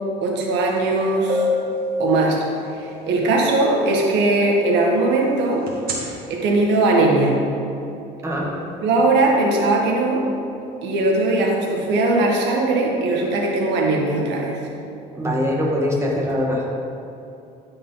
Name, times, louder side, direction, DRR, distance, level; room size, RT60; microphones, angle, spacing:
voice 1, 0.2-1.4 2.0-2.4 2.7-5.7 6.0-7.3 8.8-10.2 10.8-14.6, right 2 dB, 75° right, -1 dB, 1.9 m, -19 dB
sound 1, 0.8-0.9 1.3-3.0 5.7-5.9, left 2 dB, 55° right, 2.2 m, -24 dB
voice 2, 8.2-8.5 15.1-16.7, left 1 dB, 15° right, -3 dB, 2.1 m, -22 dB
13.5 x 5.4 x 4.1 m, 2.8 s
cardioid pair, 105°, 18 cm